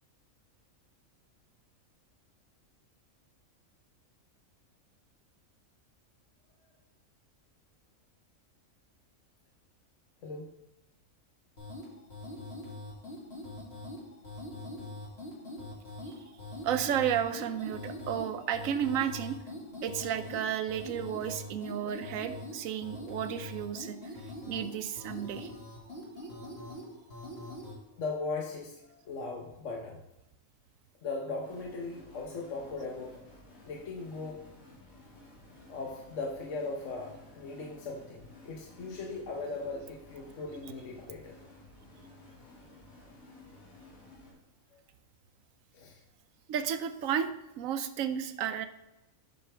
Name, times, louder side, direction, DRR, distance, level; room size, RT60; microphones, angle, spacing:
sound 1, 11.6-27.8, left 1 dB, 50° left, 2.2 m, -43 dB
voice 1, 16.6-19.4 19.8-25.5 40.6-40.7 46.5-48.7, right 9 dB, 80° right, 10 dB, 1.0 m, -33 dB
voice 2, 28.0-30.0 31.0-33.2 33.7-34.5 35.7-41.3 45.7-46.0, left 3 dB, 65° left, 0 dB, 1.1 m, -38 dB
sound 2, 31.4-44.3, left 2 dB, 90° left, 2.3 m, -54 dB
7.8 x 6.3 x 3.3 m, 0.95 s
omnidirectional pair, 1.4 m